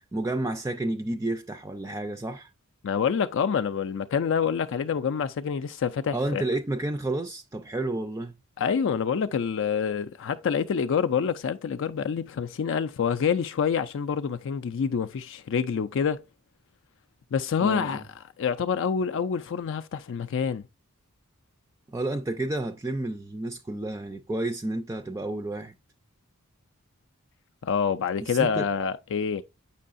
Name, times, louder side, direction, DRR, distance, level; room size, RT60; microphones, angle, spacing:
voice 1, 0.1-2.5 6.1-8.4 17.6-18.0 21.9-25.7 28.2-28.7, right 2 dB, 15° right, 0.4 m, -31 dB
voice 2, 2.8-6.4 8.6-16.2 17.3-18.0 18.4-20.6 27.6-29.4, left 6 dB, 60° left, 0.4 m, -27 dB
7.5 x 5.4 x 2.5 m
head